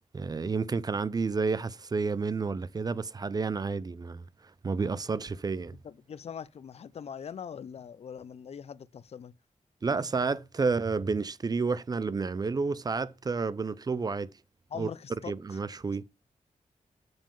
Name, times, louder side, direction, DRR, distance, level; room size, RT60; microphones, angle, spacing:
voice 1, 0.1-4.3 4.6-5.8 9.8-14.3 14.8-14.9 15.3-16.0, right 4 dB, 30° right, 0.4 m, -30 dB
voice 2, 5.8-9.3 14.7-15.6, left 7 dB, 50° left, 0.4 m, -42 dB
7.0 x 5.2 x 3.6 m
wide cardioid pair, 125°, 14 cm